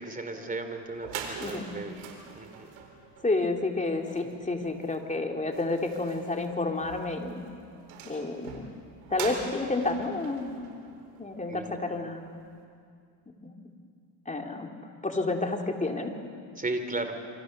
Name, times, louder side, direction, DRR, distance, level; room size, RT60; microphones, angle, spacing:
voice 1, 0.0-2.0 2.3-2.7 11.5-11.8 16.6-17.2, right 2 dB, 20° right, 7 dB, 3.3 m, -35 dB
sound 1, 0.6-0.7 0.9-11.7, right 6 dB, 85° right, 4.3 m, -44 dB
voice 2, 3.2-7.4 8.0-8.6 9.1-10.6 11.2-12.2 13.4-13.5 14.3-14.7 15.0-16.1, left 2 dB, 15° left, 2 dB, 3.1 m, -30 dB
28.0 x 25.0 x 6.7 m, 2.3 s
supercardioid pair, 95°, 45 cm